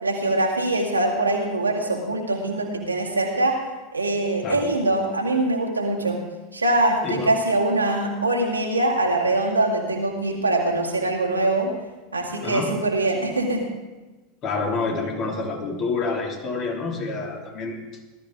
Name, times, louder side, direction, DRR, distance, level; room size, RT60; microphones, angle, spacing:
voice 1, 0.0-3.6 3.9-6.2 6.5-11.7 12.1-13.6, right 2 dB, 85° right, -1 dB, 2.3 m, -23 dB
voice 2, 14.4-17.8, left 3 dB, 40° left, 0 dB, 3.0 m, -28 dB
18.5 x 13.0 x 3.7 m, 1.2 s
figure-of-eight pair, 85°, 0 cm